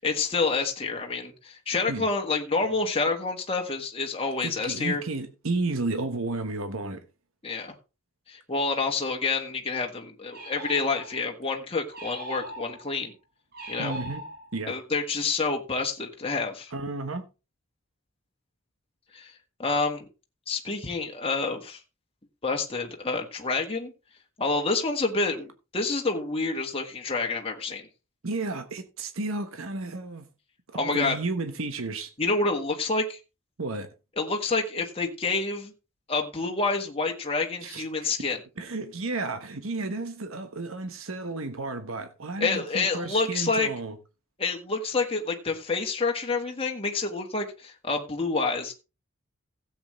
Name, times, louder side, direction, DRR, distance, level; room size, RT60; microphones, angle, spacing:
voice 1, 0.0-5.0 7.4-7.7 8.3-13.1 13.7-14.0 14.7-16.7 19.1-19.3 19.6-20.0 20.5-21.8 22.4-23.9 24.4-27.9 30.8-31.1 32.2-33.2 34.2-35.7 36.1-38.4 42.4-43.7 44.4-48.7, left 3 dB, 25° left, 1.5 m, -28 dB
voice 2, 4.4-7.0 13.8-14.2 14.5-14.7 16.7-17.2 28.2-30.3 30.7-32.1 33.6-33.9 37.6-38.1 38.6-44.0, right 3 dB, 80° right, 1.2 m, -32 dB
sound 1, 10.3-11.3 11.9-12.9 13.5-14.7, right 1 dB, 45° right, 5.8 m, -40 dB
16.0 x 8.0 x 3.2 m
head